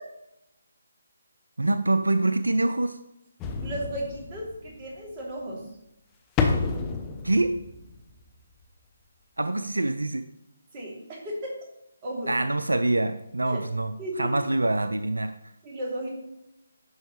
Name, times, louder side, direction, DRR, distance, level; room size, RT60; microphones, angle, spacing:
voice 1, 1.6-3.0 7.2-7.6 9.4-10.3 12.3-15.3, right 2 dB, 85° right, 11 dB, 0.4 m, -25 dB
sound 1, 3.4-4.9 6.4-8.3 8.6-8.7, left 4 dB, 15° left, 0.8 m, -29 dB
voice 2, 3.6-5.7 10.7-11.5 12.0-12.3 13.5-13.6 14.0-14.3 15.6-16.1, right 1 dB, 30° right, -3 dB, 2.9 m, -34 dB
11.0 x 5.5 x 3.2 m, 0.86 s
figure-of-eight pair, 150°, 0 cm